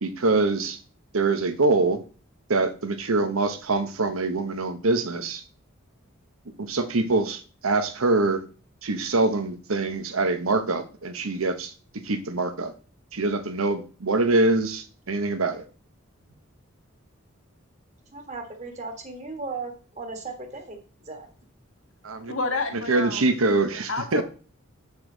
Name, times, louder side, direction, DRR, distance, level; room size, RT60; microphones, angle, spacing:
voice 1, 0.0-0.8 1.1-2.0 2.5-5.4 6.6-8.4 8.8-11.7 12.0-12.7 13.1-15.6 22.0-22.3 22.9-24.2, right 3 dB, 90° right, 9 dB, 1.1 m, -24 dB
voice 2, 18.1-21.3, right 3 dB, 35° right, 4 dB, 1.7 m, -37 dB
voice 3, 22.3-23.2 23.9-24.2, left 3 dB, 75° left, 5 dB, 1.6 m, -29 dB
8.1 x 5.6 x 3.9 m, 0.37 s
head